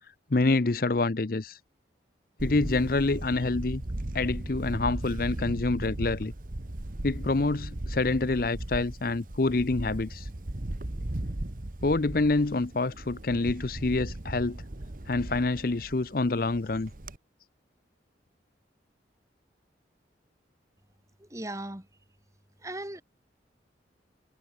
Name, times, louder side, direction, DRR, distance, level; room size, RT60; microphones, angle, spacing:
voice 1, 0.3-1.6 2.4-3.8 4.1-6.3 7.0-10.3 11.8-14.6 15.1-16.9, left 3 dB, 50° left, 0.7 m, -27 dB
Camera, 2.4-17.2, right 1 dB, 45° right, 1.2 m, -37 dB
voice 2, 21.2-21.9 22.6-23.0, right 1 dB, 15° right, 2.1 m, -37 dB
head